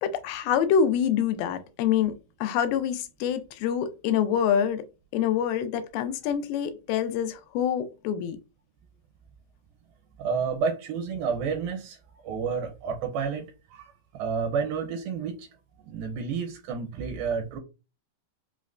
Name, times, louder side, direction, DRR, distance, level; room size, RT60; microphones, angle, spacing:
voice 1, 0.0-2.1 2.4-4.8 5.1-8.4, left 8 dB, 85° left, 2.4 m, -26 dB
voice 2, 10.2-12.0 12.2-15.5 15.9-17.6, right 6 dB, 85° right, 2.4 m, -30 dB
5.7 x 2.1 x 2.4 m
omnidirectional pair, 4.1 m